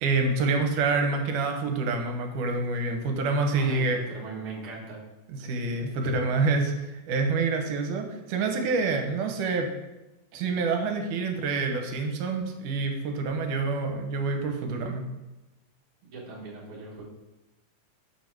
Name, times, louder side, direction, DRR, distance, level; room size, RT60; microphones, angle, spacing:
voice 1, 0.0-4.0 5.4-9.7 10.3-15.0, right 3 dB, 80° right, 4 dB, 2.3 m, -27 dB
voice 2, 3.5-5.0 6.0-6.1 16.1-17.0, right 4 dB, 50° right, -4 dB, 1.9 m, -39 dB
7.0 x 4.6 x 4.6 m, 1.0 s
omnidirectional pair, 3.7 m